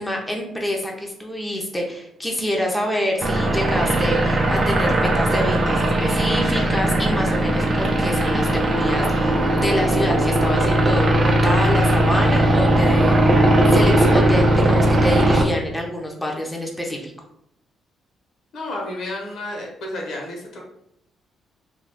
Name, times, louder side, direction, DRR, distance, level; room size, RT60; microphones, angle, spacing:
voice 1, 0.0-13.3 13.7-17.1, equal, 5° left, -1 dB, 0.6 m, -26 dB
sound 1, 3.2-15.5, right 1 dB, 45° right, 0.5 m, -18 dB
voice 2, 18.5-20.6, left 1 dB, 70° left, -1 dB, 1.0 m, -31 dB
2.5 x 2.3 x 3.3 m, 0.75 s
cardioid pair, 90°, 0 cm